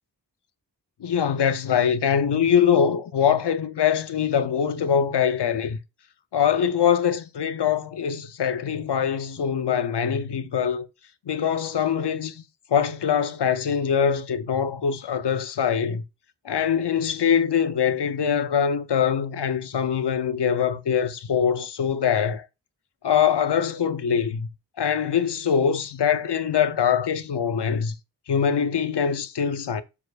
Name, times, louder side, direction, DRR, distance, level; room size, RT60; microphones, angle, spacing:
voice 1, 1.0-5.8 6.3-10.9 11.3-12.4 12.7-16.0 16.4-22.4 23.0-24.5 24.8-27.9 28.3-29.8, left 7 dB, 70° left, 0.7 m, -23 dB
7.0 x 6.4 x 2.4 m
cardioid pair, 45°, 43 cm